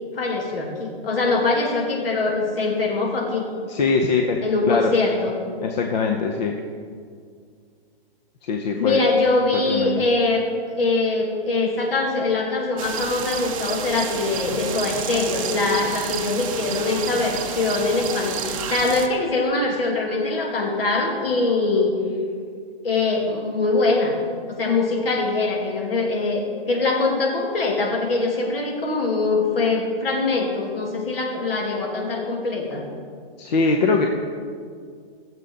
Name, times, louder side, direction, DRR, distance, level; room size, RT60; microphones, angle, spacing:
voice 1, 0.1-3.5 4.4-5.4 8.7-21.9 22.8-24.2 24.5-32.9, left 3 dB, 65° left, 0 dB, 2.6 m, -23 dB
voice 2, 3.7-4.9 5.6-6.5 8.5-9.0 9.7-10.0 33.4-34.1, left 4 dB, 45° left, 3 dB, 0.8 m, -22 dB
sound 1, 12.8-19.1, right 7 dB, 35° right, 0.8 m, -30 dB
16.5 x 7.5 x 4.0 m, 2.1 s
hypercardioid pair, 155°, 31 cm